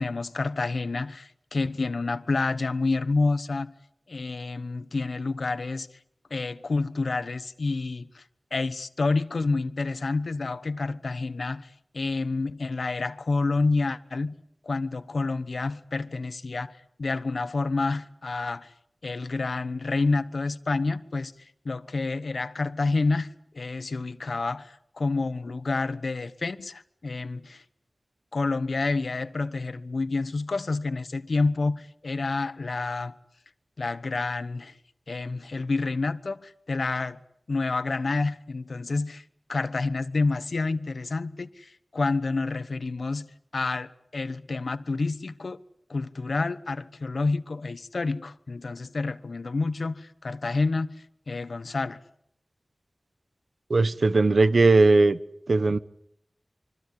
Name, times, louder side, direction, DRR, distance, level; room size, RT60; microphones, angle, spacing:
voice 1, 0.0-3.7 4.1-5.9 6.3-8.2 8.5-14.4 14.6-18.7 19.0-27.6 28.3-33.1 33.8-34.7 35.1-37.2 37.5-39.2 39.5-45.6 45.9-51.0 51.3-52.0, left 3 dB, 75° left, 1.1 m, -28 dB
voice 2, 53.7-55.2 55.5-55.8, right 3 dB, 75° right, 1.1 m, -19 dB
25.5 x 25.0 x 8.4 m
wide cardioid pair, 70°, 0 cm